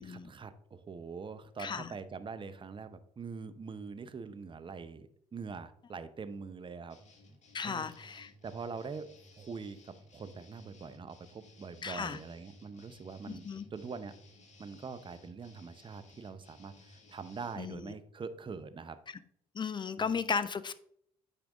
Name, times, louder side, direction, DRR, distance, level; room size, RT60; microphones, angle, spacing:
voice 1, 0.0-7.0 7.6-7.9 8.4-9.1 9.4-14.1 14.6-19.0 20.0-20.1, right 5 dB, 30° right, 11 dB, 0.7 m, -44 dB
sound 1, 6.9-17.6, left 1 dB, 40° left, 1.7 m, -58 dB
voice 2, 7.5-8.3 11.8-12.2 13.3-13.7 17.6-17.9 19.1-19.2 19.5-20.7, left 5 dB, 25° left, 15 dB, 0.5 m, -35 dB
9.2 x 5.0 x 2.4 m, 0.67 s
hypercardioid pair, 55°, 18 cm